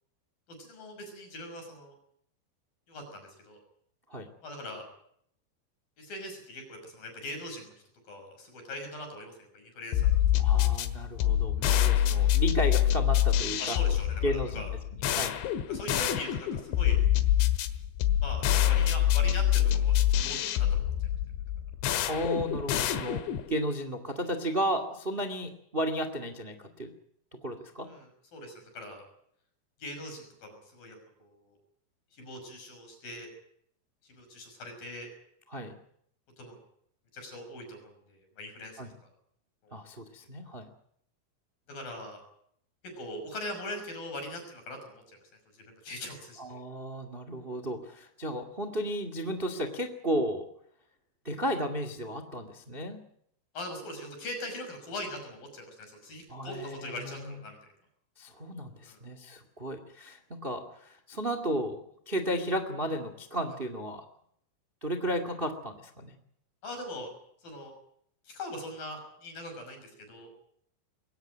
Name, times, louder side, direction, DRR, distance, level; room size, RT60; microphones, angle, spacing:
voice 1, 0.5-1.9 2.9-3.6 4.4-4.9 6.0-7.7 8.1-10.0 10.3-10.4 13.6-14.7 15.7-17.0 18.2-20.9 27.8-29.0 29.8-31.6 32.1-33.3 34.0-35.1 36.4-36.6 37.1-38.8 39.6-39.7 41.7-42.2 42.8-45.2 45.5-46.6 53.5-57.6 58.8-59.0 66.6-67.1 67.4-67.7 68.2-70.3, left 1 dB, 50° left, 5 dB, 7.5 m, -41 dB
sound 1, 9.9-23.5, left 11 dB, 80° left, 3.7 m, -26 dB
voice 2, 10.4-13.8 14.2-14.6 15.1-15.4 22.1-26.9 27.3-27.9 35.5-35.7 38.8-38.9 39.7-40.6 46.4-50.5 51.2-53.0 56.3-57.4 58.2-61.8 62.0-64.0 64.8-66.1, equal, 50° right, 9 dB, 0.6 m, -33 dB
22.0 x 17.5 x 9.1 m, 0.70 s
omnidirectional pair, 5.3 m